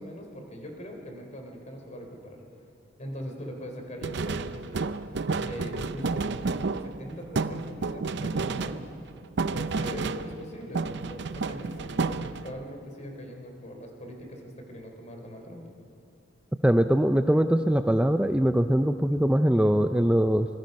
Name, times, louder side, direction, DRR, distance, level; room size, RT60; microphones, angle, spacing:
voice 1, 0.0-2.4 3.0-4.9 5.4-6.5 6.8-8.9 9.5-15.6, equal, 40° left, 3 dB, 3.4 m, -41 dB
sound 1, 4.0-10.5 10.7-12.6, right 4 dB, 65° right, 0.6 m, -31 dB
voice 2, 16.6-20.5, equal, 5° right, 8 dB, 0.4 m, -22 dB
26.0 x 22.0 x 5.4 m, 2.6 s
head